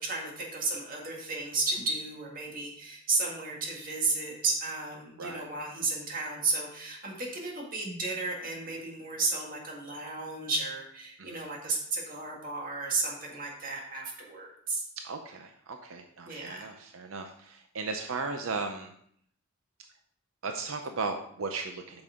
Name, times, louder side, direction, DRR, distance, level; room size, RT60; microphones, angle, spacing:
voice 1, 0.0-14.8 16.3-16.7, right 3 dB, 40° right, -1 dB, 1.9 m, -33 dB
voice 2, 11.2-11.5 15.0-18.9 20.4-22.0, right 4 dB, 80° right, 5 dB, 0.6 m, -36 dB
8.7 x 6.1 x 3.6 m, 0.66 s
head